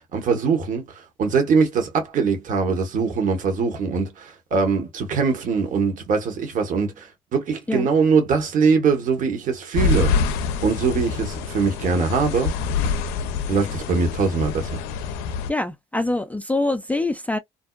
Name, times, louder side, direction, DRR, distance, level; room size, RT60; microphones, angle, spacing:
voice 1, 0.0-10.1 10.6-12.5 13.5-14.8, right 5 dB, 55° right, 1.1 m, -22 dB
sound 1, 9.7-15.5, left 5 dB, 80° left, 0.4 m, -26 dB
voice 2, 15.5-17.4, left 2 dB, 10° left, 0.4 m, -24 dB
2.6 x 2.1 x 2.3 m
supercardioid pair, 65°, 16 cm